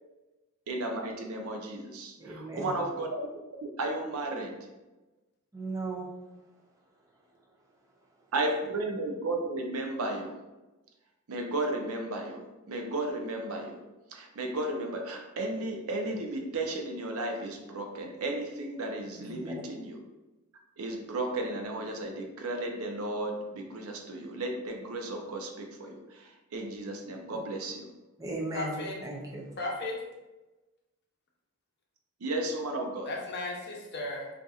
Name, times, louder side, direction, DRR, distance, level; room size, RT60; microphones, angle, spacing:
voice 1, 0.7-3.2 3.8-4.6 8.3-10.4 11.3-13.8 14.1-20.0 20.8-27.9 32.2-33.1, right 2 dB, 75° right, 3 dB, 0.5 m, -34 dB
voice 2, 2.2-2.7 5.5-6.1 19.2-19.5 28.2-29.5, right 2 dB, 15° right, -1 dB, 0.4 m, -37 dB
voice 3, 28.5-29.0 29.6-30.0 33.0-34.3, left 2 dB, 50° left, -1 dB, 0.7 m, -35 dB
4.0 x 2.5 x 2.4 m, 1.1 s
head